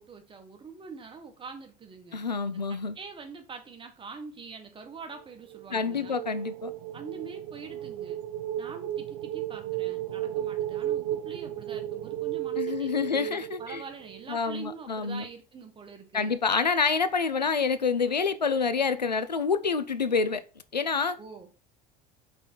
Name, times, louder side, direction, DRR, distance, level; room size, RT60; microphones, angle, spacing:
voice 1, 0.0-2.2 2.7-6.2 6.9-8.2 8.6-16.4 21.2-21.5, right 5 dB, 25° right, 1.5 m, -44 dB
voice 2, 2.1-3.0 5.7-6.7 12.6-13.8 14.3-15.2 16.1-20.4 20.7-21.2, left 5 dB, 90° left, 0.5 m, -27 dB
sound 1, 5.5-14.4, right 12 dB, 60° right, 0.5 m, -34 dB
5.2 x 3.9 x 4.6 m
figure-of-eight pair, 65°, 21 cm